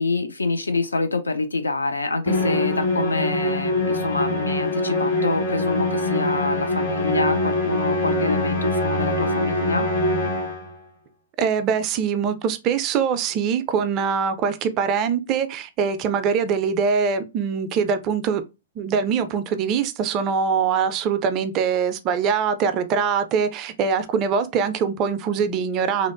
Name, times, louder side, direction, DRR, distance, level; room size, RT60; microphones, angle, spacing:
voice 1, 0.0-9.9, left 3 dB, 75° left, 0.4 m, -26 dB
Musical instrument, 2.3-10.8, left 2 dB, 55° left, 1.1 m, -23 dB
voice 2, 11.4-18.4 18.8-26.1, right 6 dB, 30° right, 0.3 m, -23 dB
2.8 x 2.0 x 2.4 m
figure-of-eight pair, 110°, 0 cm